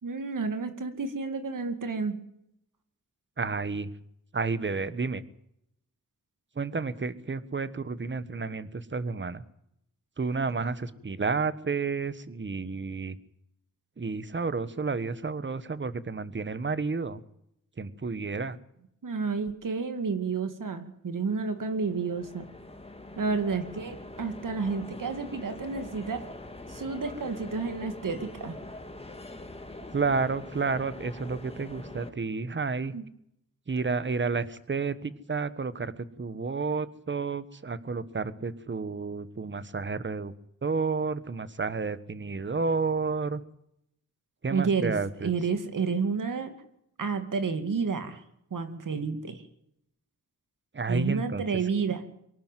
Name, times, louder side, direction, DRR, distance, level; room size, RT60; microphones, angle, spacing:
voice 1, 0.0-2.2 19.0-22.4 23.2-26.2 26.7-28.6 32.9-33.0 44.5-44.9 45.2-46.5 47.0-48.2 48.5-49.4 50.9-52.0, right 5 dB, 75° right, 8 dB, 2.4 m, -30 dB
voice 2, 3.4-3.9 4.3-5.2 6.6-9.4 10.2-13.2 14.0-17.2 17.8-18.6 29.9-32.9 33.7-40.3 40.6-43.4 44.4-45.3 50.7-51.4 51.8-51.9, right 4 dB, 35° right, 15 dB, 1.3 m, -31 dB
sound 1, 21.2-32.1, left 2 dB, 20° left, 2.1 m, -43 dB
24.0 x 12.0 x 9.3 m, 0.76 s
wide cardioid pair, 145°, 32 cm